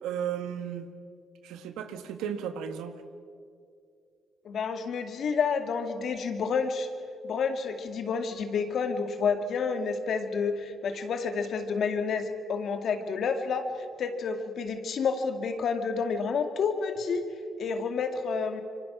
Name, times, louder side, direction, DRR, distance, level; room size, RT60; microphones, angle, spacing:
voice 1, 0.0-0.9 1.4-3.0, right 8 dB, 85° right, 9 dB, 1.5 m, -34 dB
voice 2, 4.4-6.9 7.2-13.6 14.0-17.2 17.6-18.6, left 5 dB, 65° left, 7 dB, 2.2 m, -29 dB
26.0 x 24.5 x 6.0 m, 2.4 s
supercardioid pair, 65°, 0 cm